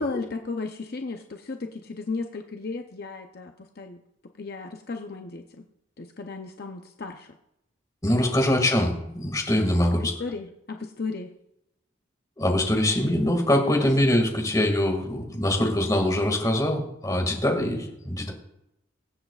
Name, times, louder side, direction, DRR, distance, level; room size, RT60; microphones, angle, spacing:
voice 1, 0.0-4.0 4.4-5.6 6.0-7.3 10.0-11.3, left 3 dB, 50° left, 4 dB, 0.6 m, -34 dB
voice 2, 8.0-10.1 12.4-18.3, left 1 dB, 20° left, 2 dB, 2.0 m, -23 dB
23.0 x 7.9 x 2.4 m, 0.84 s
head